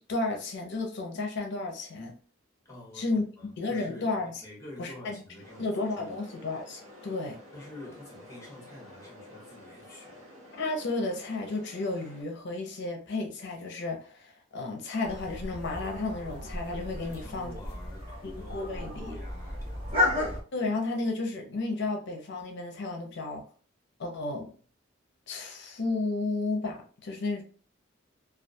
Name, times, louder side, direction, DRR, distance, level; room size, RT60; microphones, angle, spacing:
voice 1, 0.1-2.1 2.9-3.2 3.6-4.3 4.8-5.2 5.6-7.4 10.6-17.5 18.2-19.2 20.5-23.4 24.0-24.5 25.3-27.4, left 3 dB, 60° left, 0.6 m, -32 dB
voice 2, 2.6-4.1 4.4-6.2 7.5-10.2 16.9-20.3, left 1 dB, 15° left, 0.9 m, -48 dB
sound 1, 5.4-12.2, left 1 dB, 80° right, 0.8 m, -50 dB
sound 2, 15.0-20.4, left 2 dB, 30° right, 0.7 m, -33 dB
2.3 x 2.2 x 2.6 m
head